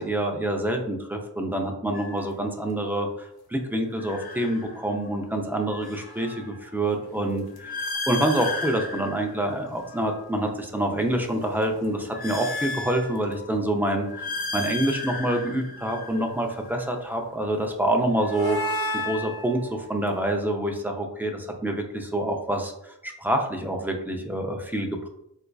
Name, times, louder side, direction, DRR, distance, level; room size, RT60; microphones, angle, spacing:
voice 1, 0.0-25.1, right 1 dB, 5° right, 2 dB, 0.4 m, -27 dB
sound 1, 1.9-2.2 3.9-5.1 5.5-10.3 10.9-13.5 13.9-16.9 17.9-20.2, left 2 dB, 60° left, 0.6 m, -35 dB
4.2 x 2.5 x 2.3 m, 0.80 s
wide cardioid pair, 75°, 42 cm